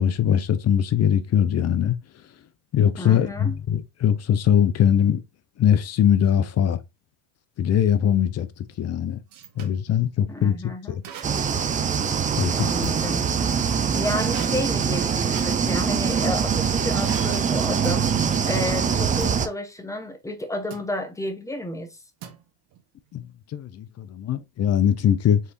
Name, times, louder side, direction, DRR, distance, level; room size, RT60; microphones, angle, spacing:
voice 1, 0.0-2.0 2.7-5.2 5.6-6.8 7.6-8.5 8.8-9.2 9.6-10.6 10.9-11.0 12.4-12.9 23.1-23.2 23.5-25.4, left 9 dB, 35° left, 0.6 m, -21 dB
voice 2, 3.0-3.6 10.3-11.0 12.5-13.3 13.9-21.9, left 1 dB, 5° left, 1.0 m, -31 dB
sound 1, 8.7-9.8 11.0-11.6 12.0-13.2 14.3-16.3 17.1-17.5 17.8-18.1 19.2-19.4 20.7-21.0 22.2-22.8, right 9 dB, 45° right, 1.0 m, -41 dB
sound 2, 11.2-19.5, right 7 dB, 20° right, 0.4 m, -23 dB
4.5 x 3.3 x 3.0 m
supercardioid pair, 95°, 47 cm